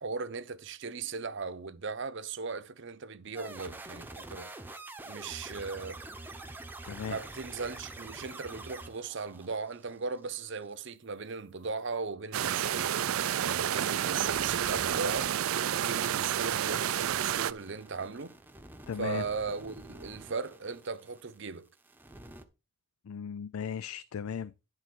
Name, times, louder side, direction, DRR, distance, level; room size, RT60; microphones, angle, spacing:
voice 1, 0.0-4.5 5.0-6.0 7.1-13.0 13.4-15.4 15.7-18.4 19.0-21.7, right 4 dB, 60° right, 0.8 m, -38 dB
sound 1, 3.3-10.7 13.1-21.5 21.7-22.4, right 2 dB, 10° right, 0.8 m, -48 dB
voice 2, 6.9-7.2 18.9-19.2 23.0-24.5, left 7 dB, 80° left, 0.4 m, -36 dB
sound 2, 12.3-17.5, right 10 dB, 80° right, 0.4 m, -30 dB
10.5 x 4.1 x 6.1 m
head